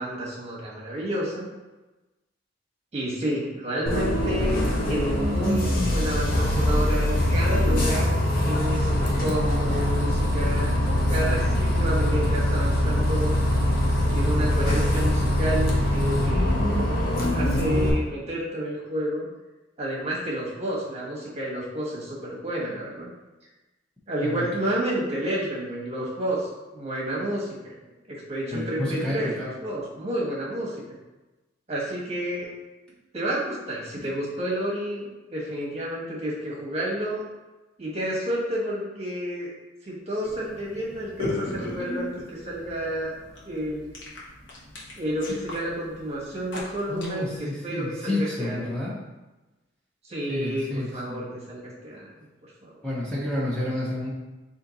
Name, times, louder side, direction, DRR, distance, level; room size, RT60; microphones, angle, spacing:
voice 1, 0.0-1.5 2.9-10.7 11.1-13.3 14.1-16.7 17.3-19.3 19.8-23.1 24.1-27.7 28.1-30.8 31.7-32.5 33.1-37.2 37.8-39.5 39.8-43.1 43.4-43.9 45.0-48.7 50.1-52.1 52.6-52.7, right 1 dB, 35° right, -5 dB, 1.2 m, -30 dB
Bus, 3.9-17.9, left 1 dB, 50° left, 0.8 m, -23 dB
voice 2, 28.5-29.5 46.9-48.9 50.3-51.3 52.8-54.1, left 1 dB, 5° left, -7 dB, 0.8 m, -30 dB
sound 1, 40.2-47.4, left 2 dB, 70° left, 1.1 m, -36 dB
4.3 x 2.7 x 4.0 m, 1.1 s
head